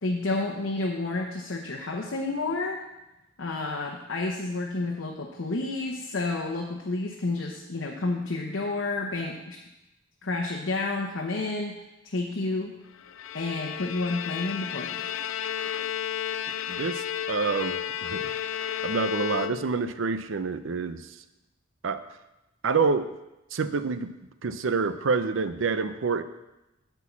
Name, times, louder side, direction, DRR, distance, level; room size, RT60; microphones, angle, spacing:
voice 1, 0.0-2.8 3.4-9.6 10.2-11.8 12.0-12.7 13.3-15.1, left 2 dB, 65° left, 0 dB, 0.9 m, -30 dB
Bowed string instrument, 13.0-20.0, left 9 dB, 85° left, 0.4 m, -32 dB
voice 2, 16.7-18.3 18.8-21.2 21.8-22.0 22.6-23.1 23.5-24.1 24.4-26.2, right 4 dB, 75° right, 11 dB, 0.6 m, -27 dB
8.3 x 4.6 x 7.1 m, 0.97 s
head